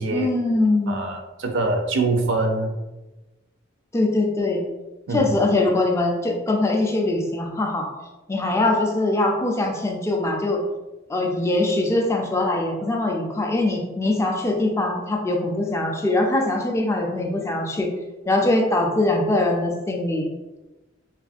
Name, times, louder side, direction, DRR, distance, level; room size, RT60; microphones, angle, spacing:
voice 1, 0.1-1.1 3.9-4.6 5.1-7.9 8.3-10.6 11.1-17.9 18.3-20.3, left 2 dB, 15° left, 0 dB, 0.3 m, -22 dB
voice 2, 0.9-2.8 5.1-5.4, right 2 dB, 65° right, 4 dB, 0.4 m, -24 dB
2.9 x 2.4 x 2.4 m, 1.1 s
head